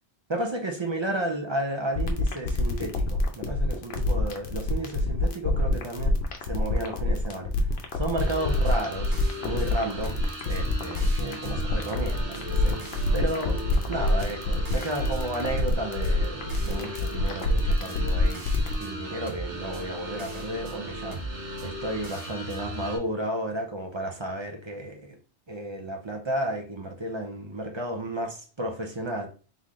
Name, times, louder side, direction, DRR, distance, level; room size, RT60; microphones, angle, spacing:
voice 1, 0.3-6.1 6.5-7.5 7.9-13.6 13.9-21.2 21.6-25.2 25.5-29.3, right 1 dB, 35° right, 0.5 m, -33 dB
sound 1, 1.9-18.8, left 2 dB, 65° left, 0.9 m, -26 dB
sound 2, 8.2-23.0, right 1 dB, 80° right, 1.3 m, -37 dB
3.7 x 3.1 x 3.7 m
omnidirectional pair, 1.2 m